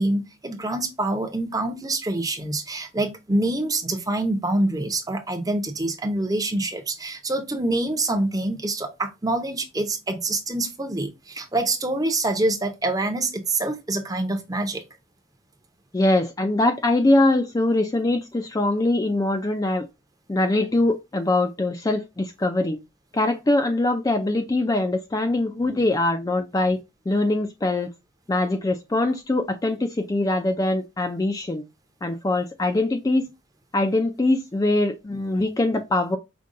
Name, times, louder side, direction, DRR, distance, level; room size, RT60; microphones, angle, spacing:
voice 1, 0.0-14.8, right 2 dB, 20° right, 0.7 m, -26 dB
voice 2, 15.9-19.9 20.3-22.8 23.1-26.8 27.1-27.9 28.3-31.6 32.0-33.3 33.7-36.2, left 2 dB, 20° left, 0.3 m, -22 dB
5.2 x 2.2 x 3.6 m
head